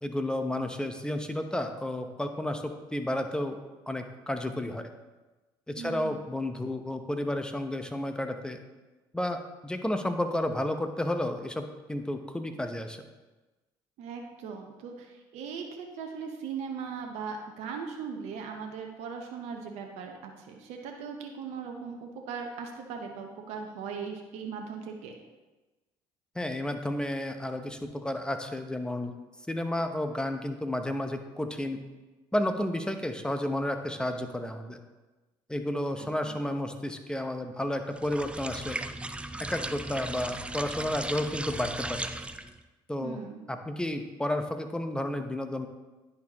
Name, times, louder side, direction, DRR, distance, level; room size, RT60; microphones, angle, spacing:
voice 1, 0.0-3.6 3.9-4.9 5.7-8.6 9.1-13.0 26.3-29.1 29.5-31.8 32.3-34.8 35.5-38.8 39.5-42.1 42.9-43.2 43.5-45.7, left 1 dB, 5° left, 7 dB, 0.8 m, -32 dB
voice 2, 5.8-6.3 14.0-25.1 36.0-36.4 43.0-43.4, right 6 dB, 75° right, 2 dB, 0.8 m, -39 dB
sound 1, 38.0-42.6, right 2 dB, 10° right, 0.4 m, -36 dB
10.5 x 4.4 x 2.9 m, 1.2 s
hypercardioid pair, 65°, 11 cm